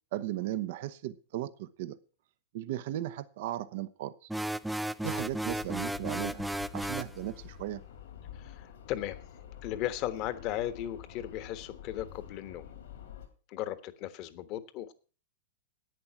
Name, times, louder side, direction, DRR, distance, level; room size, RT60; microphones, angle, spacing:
voice 1, 0.1-2.0 2.5-4.3 5.0-6.4 6.7-7.8, right 13 dB, 60° right, 0.8 m, -36 dB
sound 1, 4.3-7.2, right 1 dB, 5° right, 0.4 m, -34 dB
sound 2, 5.0-13.3, left 10 dB, 75° left, 3.3 m, -48 dB
voice 2, 8.4-9.2 9.6-12.6 13.5-14.9, left 12 dB, 45° left, 1.3 m, -36 dB
11.0 x 8.8 x 5.9 m
hypercardioid pair, 110°, 0 cm